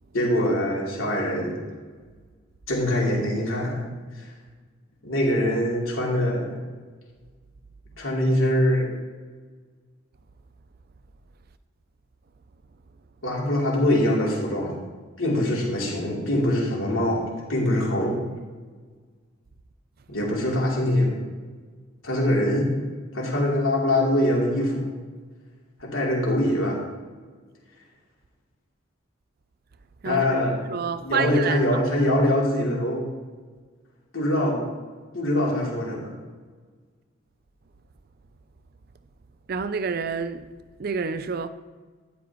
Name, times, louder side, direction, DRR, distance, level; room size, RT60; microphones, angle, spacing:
voice 1, 0.1-1.6 2.7-3.8 4.1-4.3 5.0-6.6 8.0-8.9 13.2-14.8 15.2-18.2 20.1-21.2 22.0-22.7 23.1-24.9 25.8-26.8 30.0-30.6 30.9-33.0 34.1-34.6 35.1-36.2, left 1 dB, 80° left, 3.2 m, -23 dB
voice 2, 30.0-31.8 39.5-40.5 40.8-41.5, right 5 dB, 50° right, 0.5 m, -29 dB
13.0 x 10.0 x 3.1 m
head